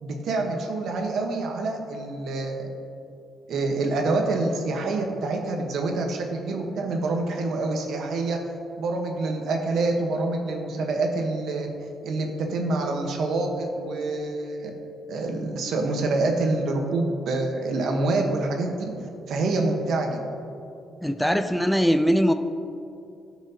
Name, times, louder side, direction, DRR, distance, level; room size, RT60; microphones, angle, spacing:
voice 1, 0.0-2.8 3.5-8.4 8.8-11.7 12.0-14.7 15.1-18.8 19.3-20.2, right 2 dB, 70° right, 2 dB, 1.2 m, -26 dB
voice 2, 21.0-22.3, equal, ahead, 8 dB, 0.4 m, -21 dB
14.0 x 6.2 x 2.9 m, 2.7 s
cardioid pair, 90°, 0 cm